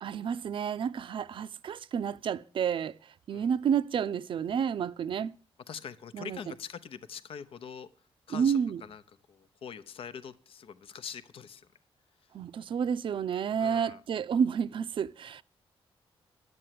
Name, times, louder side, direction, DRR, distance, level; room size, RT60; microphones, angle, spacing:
voice 1, 0.0-3.0 3.3-5.3 6.1-6.4 8.3-8.8 12.3-15.4, right 7 dB, 55° right, 0.5 m, -30 dB
voice 2, 5.7-7.9 8.3-9.0 9.3-11.7 12.2-12.3 13.6-14.0, left 7 dB, 65° left, 0.8 m, -44 dB
11.0 x 7.7 x 7.6 m
cardioid pair, 115°, 10 cm